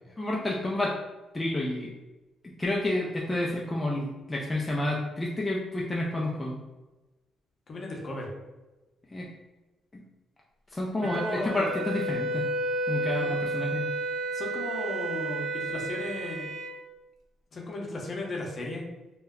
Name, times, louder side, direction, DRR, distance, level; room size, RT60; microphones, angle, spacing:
voice 1, 0.2-0.9 1.3-1.9 2.6-6.6 9.1-9.3 9.9-10.0 10.7-12.5 12.9-13.9, left 1 dB, 20° left, -3 dB, 0.4 m, -29 dB
voice 2, 7.7-8.3 11.1-11.8 13.2-13.3 14.3-16.5 17.5-18.8, left 2 dB, 45° left, -1 dB, 0.7 m, -35 dB
Wind instrument woodwind instrument, 11.0-16.7, right 2 dB, 75° right, 0.6 m, -31 dB
2.1 x 2.1 x 3.5 m, 1.1 s
cardioid pair, 90°, 0 cm